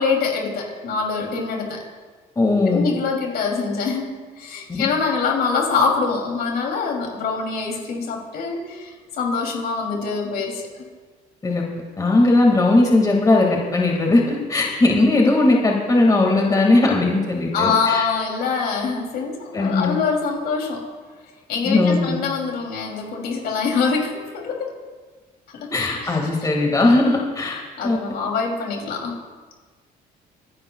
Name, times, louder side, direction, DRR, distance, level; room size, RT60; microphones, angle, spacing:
voice 1, 0.0-1.8 2.7-10.6 17.5-20.8 21.5-24.7 25.5-25.7 27.8-29.2, left 5 dB, 65° left, 1 dB, 3.0 m, -24 dB
voice 2, 2.4-2.8 11.4-11.6 12.0-18.1 19.5-20.0 21.6-22.2 25.7-27.6 27.8-28.0, left 2 dB, 20° left, -1 dB, 2.0 m, -18 dB
25.5 x 11.0 x 2.3 m, 1.4 s
cardioid pair, 110°, 17 cm